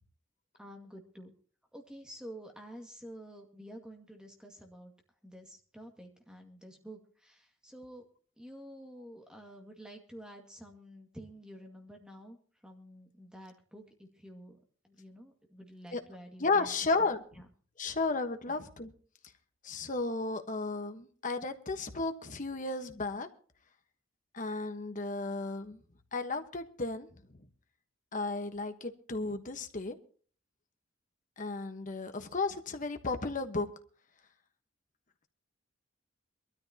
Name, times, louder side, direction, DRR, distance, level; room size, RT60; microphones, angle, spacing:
voice 1, 0.6-1.3 1.7-4.9 5.2-8.0 8.4-12.4 12.6-14.6 14.8-16.7 17.0-17.1 17.4-17.5 18.5-18.6, equal, 5° right, 2.1 m, -49 dB
voice 2, 16.4-17.2 17.8-18.9 19.6-23.3 24.3-25.8 26.1-27.1 28.1-30.0 31.4-33.7, left 3 dB, 40° left, 1.3 m, -33 dB
23.0 x 13.0 x 2.9 m
head